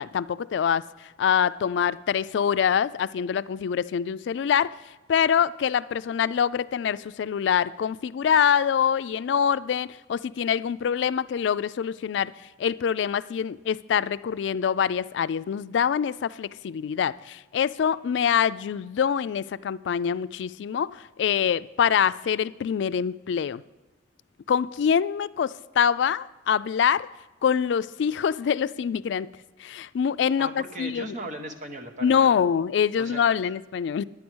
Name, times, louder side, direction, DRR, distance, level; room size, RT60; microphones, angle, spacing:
voice 1, 0.0-4.8 5.1-12.3 12.6-23.6 24.5-27.1 27.4-29.3 29.6-31.1 32.0-34.0, left 7 dB, 70° left, 0.3 m, -25 dB
voice 2, 30.4-32.4 33.0-33.2, right 1 dB, 45° right, 1.2 m, -37 dB
10.5 x 9.4 x 6.2 m
head